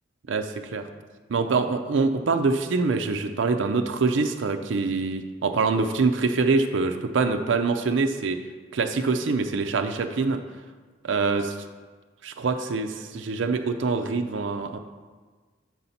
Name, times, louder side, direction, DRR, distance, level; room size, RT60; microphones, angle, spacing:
voice 1, 0.3-0.8 1.3-8.4 8.7-10.4 11.0-11.5 12.2-14.8, right 4 dB, 85° right, 7 dB, 0.5 m, -25 dB
7.5 x 4.0 x 5.7 m, 1.4 s
head